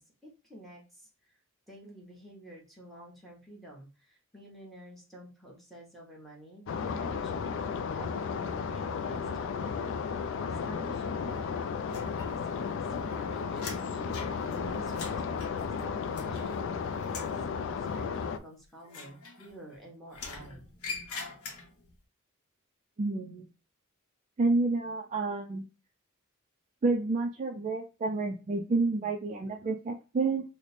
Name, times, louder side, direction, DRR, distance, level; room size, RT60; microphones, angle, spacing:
voice 1, 0.0-1.3 1.7-10.1 10.5-20.6, right 1 dB, ahead, -3 dB, 1.0 m, -50 dB
sound 1, 6.7-18.4, left 6 dB, 60° left, 0.3 m, -34 dB
sound 2, 11.9-12.7 13.0-16.7 17.0-17.4 18.9-19.7 20.1-21.9, left 4 dB, 80° left, 0.7 m, -43 dB
voice 2, 23.0-23.5 24.4-25.7 26.8-30.4, right 3 dB, 35° right, 3 dB, 0.3 m, -29 dB
3.1 x 2.1 x 4.0 m, 0.32 s
head